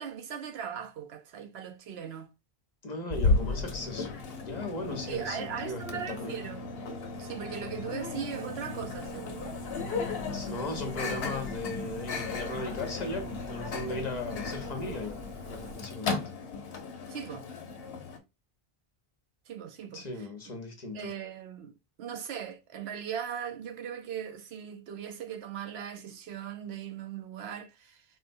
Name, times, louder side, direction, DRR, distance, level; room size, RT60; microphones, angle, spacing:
voice 1, 0.0-2.3 5.1-6.8 7.2-9.6 17.1-17.5 19.5-20.0 20.9-21.7 22.0-28.0, right 8 dB, 90° right, 0.9 m, -39 dB
voice 2, 2.8-6.4 10.3-16.2 19.9-21.1, left 2 dB, 45° left, 0.8 m, -37 dB
Microwave oven, 3.1-18.2, left 3 dB, 75° left, 0.9 m, -35 dB
sound 1, 8.9-15.7, left 1 dB, 15° right, 0.8 m, -48 dB
4.2 x 2.1 x 2.5 m
omnidirectional pair, 1.0 m